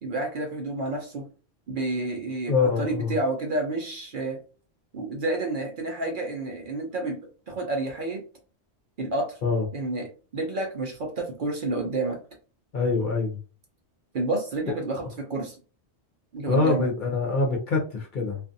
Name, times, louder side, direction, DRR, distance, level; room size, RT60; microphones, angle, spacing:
voice 1, 0.0-1.2 1.7-4.4 4.9-7.2 7.5-8.2 9.0-9.4 9.7-12.2 14.1-15.0 15.3-15.6 16.3-16.9, right 2 dB, 55° right, 2 dB, 0.7 m, -29 dB
voice 2, 2.5-3.1 9.4-9.6 12.7-13.4 16.5-18.4, left 4 dB, 50° left, 0 dB, 0.7 m, -24 dB
2.4 x 2.4 x 2.6 m, 0.37 s
omnidirectional pair, 1.2 m